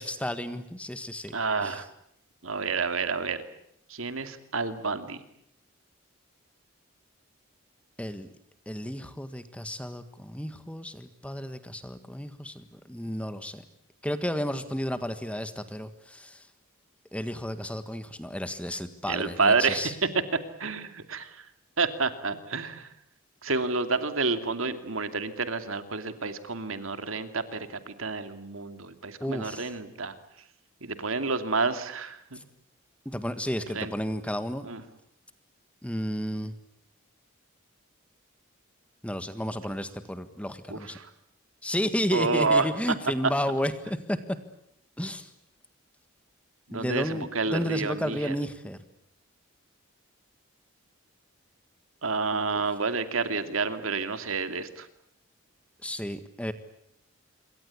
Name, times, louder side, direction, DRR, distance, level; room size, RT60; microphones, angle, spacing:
voice 1, 0.0-1.4 1.6-1.8 8.0-8.3 8.6-13.6 14.0-16.5 17.1-19.9 29.2-29.7 32.3-32.4 33.0-34.7 35.8-36.5 39.0-41.0 41.6-44.2 45.0-45.3 46.7-48.8 55.8-56.5, equal, 5° left, 11 dB, 1.6 m, -32 dB
voice 2, 1.3-1.9 2.4-3.4 3.9-5.2 19.1-19.9 20.3-21.4 21.8-22.9 23.4-30.1 30.8-32.4 33.7-33.9 34.6-34.8 40.7-41.1 42.1-42.7 43.2-43.3 46.7-48.3 52.0-54.9, right 4 dB, 75° right, 9 dB, 2.6 m, -29 dB
27.0 x 23.0 x 8.5 m, 0.74 s
head